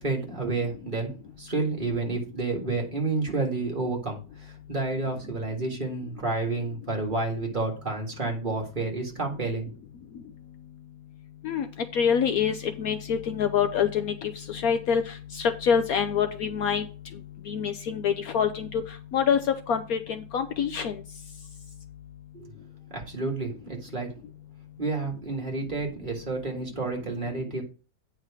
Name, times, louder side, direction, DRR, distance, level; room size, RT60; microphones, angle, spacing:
voice 1, 0.0-1.1 1.4-9.7 22.3-22.6 22.9-24.1 24.8-27.6, right 3 dB, 30° right, 0 dB, 1.9 m, -30 dB
voice 2, 11.9-16.8 17.5-18.8 19.1-19.4 19.7-21.0, left 7 dB, 65° left, 8 dB, 1.0 m, -26 dB
9.2 x 4.7 x 4.9 m, 0.35 s
omnidirectional pair, 1.8 m